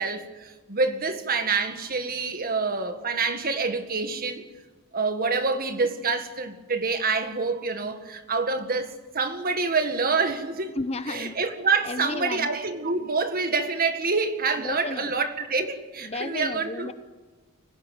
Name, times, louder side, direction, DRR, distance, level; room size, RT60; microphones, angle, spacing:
voice 1, 0.0-4.4 4.9-10.7 11.1-16.9, right 4 dB, 40° right, 1.8 m, -27 dB
voice 2, 10.8-11.4 11.8-12.5 14.6-15.1 16.0-16.9, left 2 dB, 30° left, 0.8 m, -33 dB
24.0 x 16.0 x 9.4 m
head